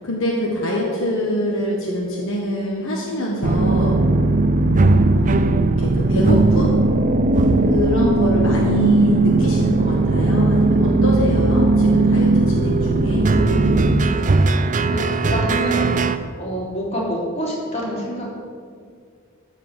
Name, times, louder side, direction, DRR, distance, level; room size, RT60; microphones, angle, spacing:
voice 1, 0.0-4.0 5.1-6.7 7.7-13.3, equal, 65° left, -3 dB, 1.5 m, -24 dB
sound 1, 3.4-16.2, right 2 dB, 35° right, 0.5 m, -17 dB
voice 2, 13.3-14.2 14.5-14.6 14.9-15.0 15.3-15.9 16.4-18.3, equal, 30° left, -5 dB, 3.4 m, -27 dB
13.0 x 5.0 x 7.7 m, 2.1 s
head